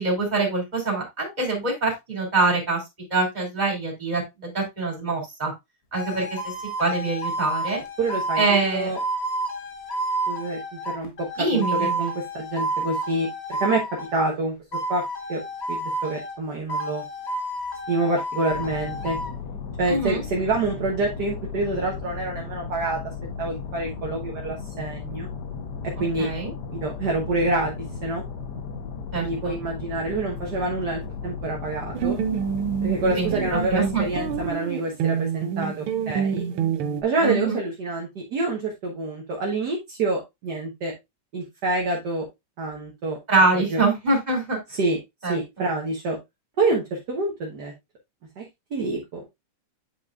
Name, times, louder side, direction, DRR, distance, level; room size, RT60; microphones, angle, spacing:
voice 1, 0.0-2.8 3.1-5.5 5.9-6.5 6.8-7.8 8.4-8.9 11.4-12.1 19.9-20.2 26.2-26.5 29.1-29.5 33.1-34.0 37.2-37.6 43.3-44.6 45.2-45.4, right 3 dB, 20° right, -1 dB, 2.8 m, -24 dB
sound 1, 5.9-14.2 14.7-16.4 16.7-19.3, right 1 dB, 40° left, 1.1 m, -30 dB
voice 2, 8.0-9.0 10.3-13.3 13.6-13.8 14.1-14.5 14.9-15.0 15.3-15.4 15.7-17.0 17.9-19.2 19.8-23.0 23.4-25.3 26.0-26.3 26.8-27.7 28.0-28.2 29.2-32.2 32.8-36.4 37.0-40.9 41.3-42.2 42.6-43.2 43.5-43.8 44.7-45.0 45.3-46.2 46.6-47.7 48.4-48.5 48.7-49.2, right 2 dB, 55° right, -1 dB, 1.6 m, -27 dB
sound 2, 18.5-34.5, left 5 dB, 60° left, 1.3 m, -35 dB
sound 3, 31.9-37.0, right 8 dB, 75° right, 1.6 m, -27 dB
8.5 x 5.4 x 2.4 m, 0.20 s
omnidirectional pair, 2.4 m